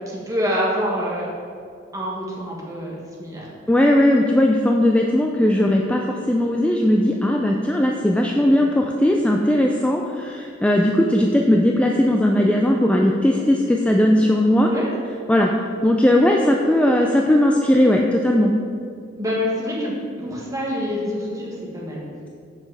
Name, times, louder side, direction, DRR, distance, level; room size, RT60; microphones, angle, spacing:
voice 1, 0.1-1.3 1.9-3.5 14.6-14.9 19.2-19.9 20.2-22.1, equal, 20° right, -4 dB, 1.6 m, -26 dB
voice 2, 3.7-14.7 15.3-15.5 15.8-18.5, left 1 dB, 5° left, 0 dB, 0.4 m, -18 dB
7.4 x 6.0 x 4.9 m, 2.4 s
head